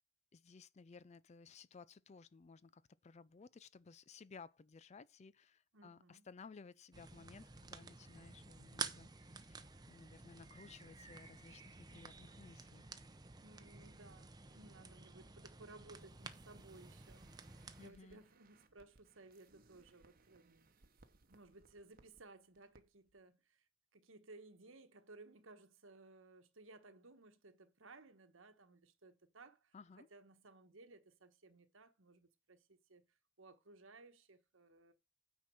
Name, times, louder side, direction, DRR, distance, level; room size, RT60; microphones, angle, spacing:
voice 1, 0.3-12.9 17.8-18.2 29.7-30.1, left 5 dB, 30° left, 0.4 m, -58 dB
voice 2, 5.7-6.3 13.4-20.7 21.3-34.9, right 2 dB, 70° right, 1.2 m, -60 dB
sound 1, 6.9-17.9, right 4 dB, 20° right, 0.7 m, -51 dB
sound 2, 15.9-22.2 22.5-22.8 23.1-23.2, right 3 dB, 45° right, 1.0 m, -69 dB
9.3 x 4.4 x 6.2 m
head